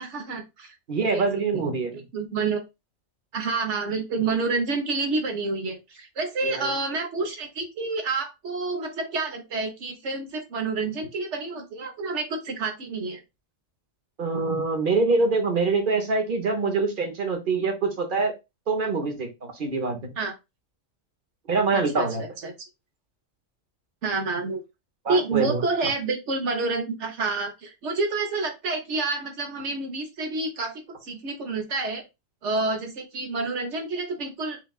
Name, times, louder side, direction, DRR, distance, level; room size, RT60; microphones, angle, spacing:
voice 1, 0.0-0.8 1.1-1.4 2.1-2.6 3.3-13.2 20.2-20.3 21.7-22.7 24.0-24.6 25.1-32.0 32.4-34.6, right 3 dB, 65° right, 4 dB, 1.4 m, -28 dB
voice 2, 0.9-2.0 6.4-6.7 14.2-18.3 18.7-20.0 21.5-22.2 25.0-25.6, right 3 dB, 45° right, 4 dB, 1.1 m, -25 dB
6.2 x 2.4 x 2.4 m, 0.24 s
omnidirectional pair, 1.3 m